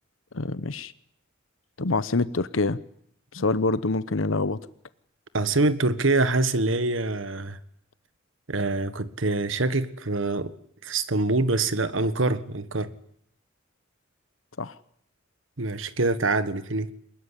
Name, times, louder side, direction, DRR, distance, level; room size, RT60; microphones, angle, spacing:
voice 1, 0.3-0.9 1.8-2.8 3.3-4.6 14.6-14.8, left 3 dB, 80° left, 15 dB, 1.0 m, -26 dB
voice 2, 5.3-7.6 8.5-10.5 10.8-12.9 15.6-16.9, right 2 dB, 75° right, 14 dB, 1.5 m, -25 dB
23.5 x 21.0 x 10.0 m, 0.69 s
head